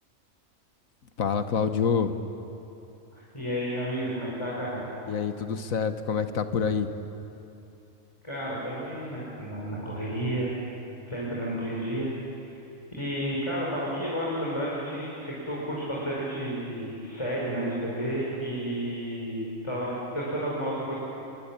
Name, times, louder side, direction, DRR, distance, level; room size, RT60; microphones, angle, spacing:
voice 1, 1.2-2.1 5.1-6.9, left 6 dB, 80° left, 9 dB, 1.6 m, -26 dB
voice 2, 3.1-4.8 8.2-10.5 11.1-12.1 13.0-20.9, equal, 20° left, -6 dB, 5.5 m, -31 dB
25.0 x 23.0 x 8.9 m, 2.8 s
omnidirectional pair, 1.4 m